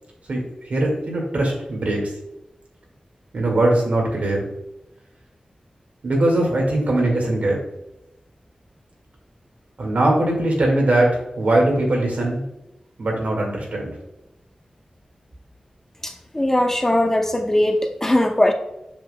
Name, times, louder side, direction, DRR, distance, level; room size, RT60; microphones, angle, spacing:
voice 1, 0.3-2.1 3.3-4.5 6.0-7.6 9.8-12.4 13.0-13.9, right 1 dB, 80° right, -1 dB, 1.9 m, -21 dB
voice 2, 16.0-18.5, left 1 dB, 15° left, 5 dB, 0.6 m, -20 dB
7.0 x 5.9 x 2.2 m, 0.90 s
wide cardioid pair, 100°, 3 cm